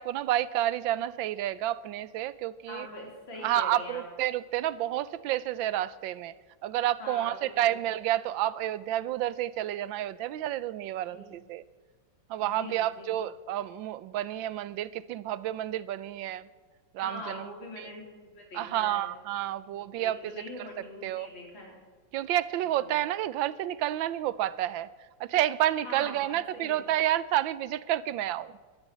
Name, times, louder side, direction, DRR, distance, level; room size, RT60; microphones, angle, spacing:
voice 1, 0.0-2.9 3.4-6.3 6.6-11.6 12.3-16.5 16.9-17.5 17.8-17.9 18.5-20.7 21.0-21.3 22.1-24.9 25.2-28.5, right 13 dB, 90° right, 17 dB, 1.4 m, -30 dB
voice 2, 2.7-4.0 7.0-7.8 11.1-11.4 12.4-13.2 17.0-19.1 19.7-21.8 25.8-26.9, left 1 dB, 85° left, 0 dB, 4.7 m, -43 dB
13.5 x 13.0 x 7.4 m, 1.4 s
omnidirectional pair, 2.1 m